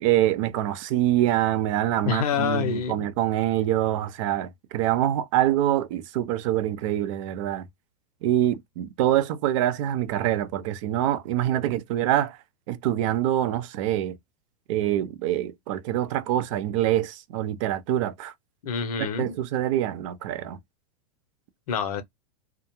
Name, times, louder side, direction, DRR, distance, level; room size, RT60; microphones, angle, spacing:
voice 1, 0.0-7.7 8.2-12.4 12.7-14.2 14.7-18.3 19.0-20.6, right 12 dB, 50° right, 0.6 m, -25 dB
voice 2, 2.0-3.0 18.6-19.3 21.7-22.0, left 7 dB, 65° left, 0.7 m, -27 dB
2.3 x 2.1 x 2.9 m
hypercardioid pair, 105°, 20 cm